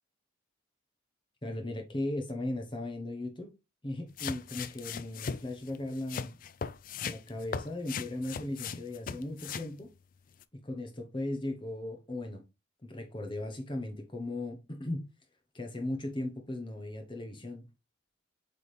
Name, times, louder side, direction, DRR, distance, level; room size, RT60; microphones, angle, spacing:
voice 1, 1.4-3.5 3.8-6.3 7.0-9.9 10.5-12.4 12.8-15.0 15.5-17.7, left 1 dB, 25° left, 0.9 m, -37 dB
sound 1, 4.2-9.7 10.4-10.5, left 6 dB, 45° left, 0.4 m, -38 dB
8.2 x 3.6 x 3.2 m
head